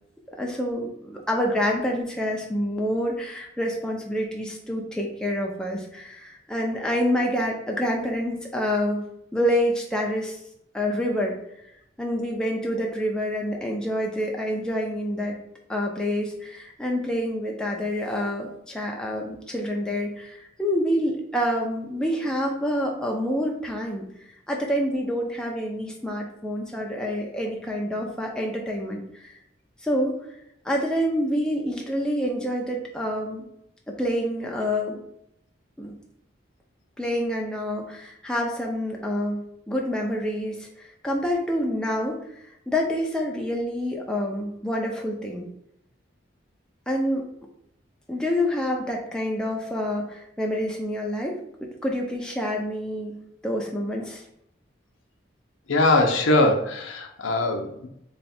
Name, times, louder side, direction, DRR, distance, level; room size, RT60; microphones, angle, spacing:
voice 1, 0.4-9.0 9.3-10.4 10.7-11.4 12.0-15.3 15.7-24.0 24.5-29.3 29.8-30.2 30.6-33.4 33.9-35.0 35.8-36.0 37.0-42.4 42.7-45.4 46.9-47.3 48.1-51.4 51.8-53.2 53.4-54.2, equal, 5° left, -1 dB, 0.5 m, -27 dB
voice 2, 55.7-57.9, left 2 dB, 85° left, 5 dB, 0.6 m, -21 dB
3.3 x 2.4 x 4.2 m, 0.75 s
head